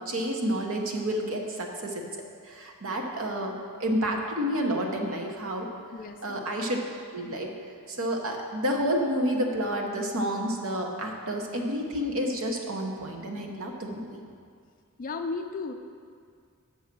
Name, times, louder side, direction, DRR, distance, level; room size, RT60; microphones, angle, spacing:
voice 1, 0.0-2.0 2.4-3.5 3.8-5.7 6.2-6.8 7.1-7.5 7.9-14.2, equal, 65° right, 2 dB, 1.0 m, -29 dB
voice 2, 5.9-6.4 15.0-15.7, left 4 dB, 40° left, 6 dB, 0.4 m, -34 dB
7.1 x 5.5 x 6.1 m, 2.2 s
head